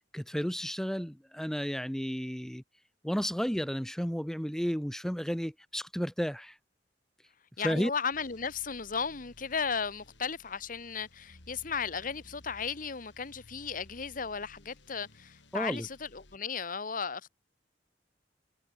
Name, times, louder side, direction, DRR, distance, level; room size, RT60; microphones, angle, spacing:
voice 1, 0.1-2.6 3.0-6.5 7.6-7.9 15.5-15.9, equal, 5° left, 1.0 m, -32 dB
voice 2, 7.6-17.3, left 6 dB, 50° left, 1.2 m, -35 dB
sound 1, 8.1-16.4, left 1 dB, 85° left, 3.4 m, -57 dB
head